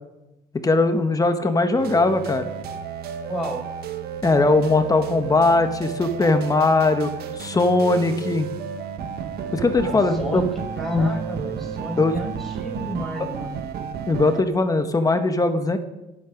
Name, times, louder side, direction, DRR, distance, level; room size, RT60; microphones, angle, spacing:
voice 1, 0.6-2.5 4.2-7.1 7.4-8.5 9.5-10.5 10.9-11.1 12.0-12.2 14.1-15.8, left 3 dB, 20° left, 8 dB, 1.3 m, -20 dB
sound 1, 1.8-14.4, right 7 dB, 70° right, 1.3 m, -32 dB
voice 2, 3.3-3.6 9.8-10.5 10.8-13.6, equal, ahead, -1 dB, 5.5 m, -31 dB
25.0 x 8.9 x 5.2 m, 1.0 s
cardioid pair, 110°, 17 cm